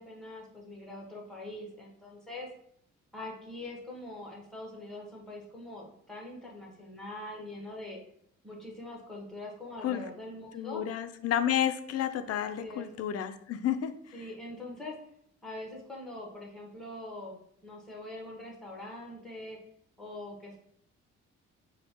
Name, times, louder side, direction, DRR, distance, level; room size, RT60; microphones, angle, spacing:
voice 1, 0.0-2.5 3.1-8.0 8.4-10.8 12.4-12.9 14.1-14.9 15.4-19.6 20.0-20.6, left 1 dB, ahead, -2 dB, 1.1 m, -43 dB
voice 2, 10.5-13.9, left 10 dB, 55° left, 10 dB, 0.4 m, -31 dB
4.2 x 2.2 x 2.9 m, 0.67 s
cardioid pair, 90°, 30 cm